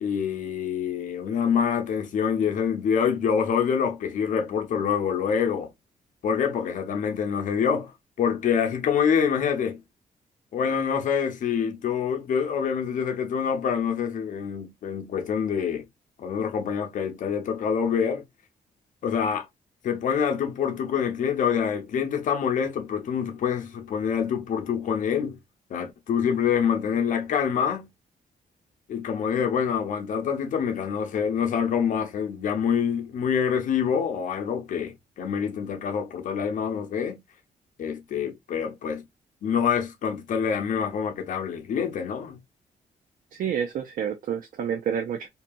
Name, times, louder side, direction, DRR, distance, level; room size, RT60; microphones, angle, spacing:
voice 1, 0.0-5.7 6.2-7.9 8.2-9.8 10.5-15.8 16.2-18.2 19.0-19.5 19.8-25.4 25.7-27.9 28.9-37.2 37.8-39.0 39.4-42.4, left 7 dB, 60° left, 0.7 m, -26 dB
voice 2, 43.3-45.3, right 8 dB, 65° right, 0.5 m, -29 dB
2.8 x 2.3 x 2.5 m
wide cardioid pair, 165°, 15 cm